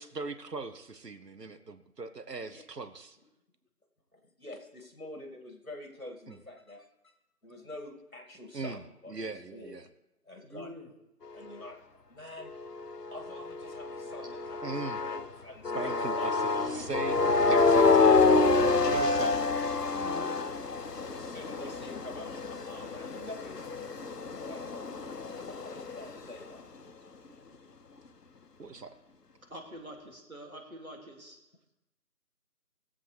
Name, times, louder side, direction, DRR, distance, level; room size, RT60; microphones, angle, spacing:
voice 1, 0.0-3.2 6.3-6.4 8.5-8.8 9.1-9.9 14.6-15.0 15.7-19.4 19.9-20.2 28.6-28.9, right 4 dB, 85° right, 10 dB, 1.1 m, -40 dB
voice 2, 4.1-7.1 7.4-9.8 10.2-10.9 11.3-12.5 13.1-16.9 20.0-20.4 21.0-23.7 24.5-24.6 25.2-26.6, left 1 dB, 60° left, 3 dB, 2.4 m, -47 dB
voice 3, 10.4-10.9 20.0-20.4 29.5-31.4, equal, 60° right, 2 dB, 2.7 m, -45 dB
sound 1, 12.4-15.3 15.7-26.1, left 3 dB, 80° left, 0.9 m, -27 dB
20.5 x 7.8 x 3.3 m, 0.91 s
figure-of-eight pair, 180°, 47 cm